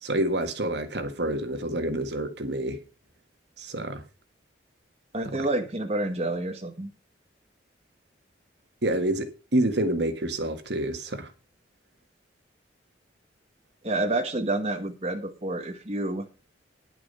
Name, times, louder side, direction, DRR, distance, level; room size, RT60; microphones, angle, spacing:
voice 1, 0.0-2.8 3.6-4.0 5.2-5.4 8.8-11.3, right 1 dB, 65° right, 1.7 m, -28 dB
voice 2, 5.1-6.9 13.8-16.2, right 2 dB, 35° right, 1.3 m, -28 dB
10.5 x 8.8 x 5.5 m
head